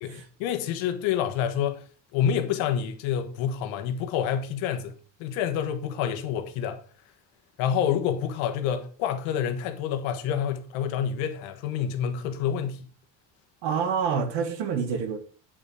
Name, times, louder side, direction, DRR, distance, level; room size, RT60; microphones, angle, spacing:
voice 1, 0.0-1.8 2.1-4.9 5.2-6.8 7.6-12.9, left 8 dB, 75° left, 1.4 m, -28 dB
voice 2, 13.6-15.2, right 6 dB, 65° right, 1.8 m, -27 dB
8.6 x 5.5 x 4.9 m
cardioid pair, 165°, 46 cm